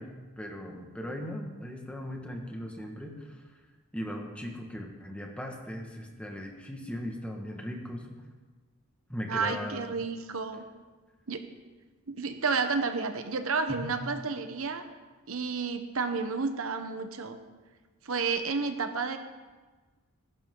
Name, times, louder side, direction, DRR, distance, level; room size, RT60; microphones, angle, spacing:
voice 1, 0.0-3.4 3.9-8.2 9.1-9.9 13.7-13.9, equal, 5° left, 1 dB, 1.6 m, -38 dB
voice 2, 9.3-10.6 11.3-11.5 12.1-14.8 15.3-17.4 18.0-19.2, right 4 dB, 65° right, 8 dB, 1.0 m, -31 dB
20.0 x 11.5 x 3.8 m, 1.3 s
head